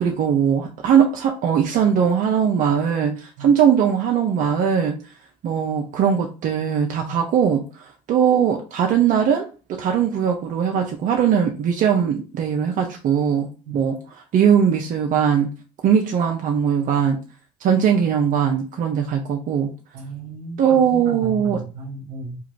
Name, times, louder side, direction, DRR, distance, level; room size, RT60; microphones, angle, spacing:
voice 1, 0.0-5.0 5.4-13.5 13.7-14.0 14.3-15.5 15.8-17.2 17.6-19.7 20.6-21.6, right 8 dB, 65° right, 0.8 m, -20 dB
voice 2, 19.9-22.4, right 3 dB, 85° right, 1.3 m, -34 dB
3.6 x 2.5 x 4.6 m
supercardioid pair, 75°, 15 cm